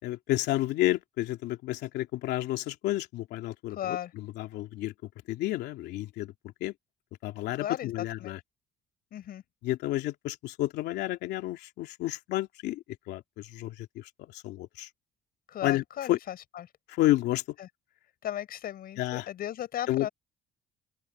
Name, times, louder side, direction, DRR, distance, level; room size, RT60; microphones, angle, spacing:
voice 1, 0.0-4.9 5.3-6.3 6.6-6.7 7.2-8.4 9.6-14.9 15.6-16.2 16.9-17.4 19.0-19.3 19.9-20.1, left 15 dB, 85° left, 2.8 m, -31 dB
voice 2, 3.7-4.1 7.6-7.9 8.2-8.4 9.1-9.4 15.5-16.7 17.6-17.7 18.2-20.1, left 11 dB, 60° left, 6.0 m, -36 dB
open air
cardioid pair, 110°, 17 cm